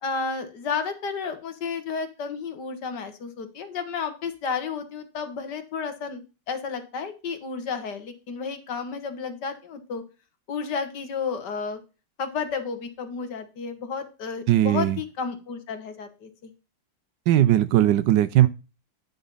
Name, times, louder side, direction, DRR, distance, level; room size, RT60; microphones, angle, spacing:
voice 1, 0.0-10.0 10.5-11.8 12.2-16.5, left 5 dB, 60° left, 1.8 m, -32 dB
voice 2, 14.5-15.0 17.3-18.5, right 13 dB, 75° right, 1.2 m, -19 dB
10.5 x 4.0 x 5.5 m
omnidirectional pair, 2.1 m